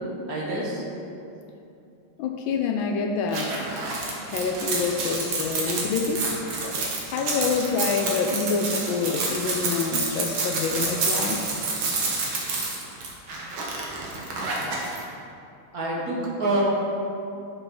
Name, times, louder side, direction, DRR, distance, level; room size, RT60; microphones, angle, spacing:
voice 1, 0.3-0.8 15.7-16.6, right 2 dB, 50° right, -5 dB, 1.6 m, -26 dB
voice 2, 2.2-3.6 4.2-6.2 6.6-11.5, left 5 dB, 75° left, 3 dB, 1.2 m, -27 dB
sound 1, 3.3-15.0, right 3 dB, 70° right, 2.0 m, -28 dB
7.2 x 5.7 x 5.2 m, 2.7 s
omnidirectional pair, 2.4 m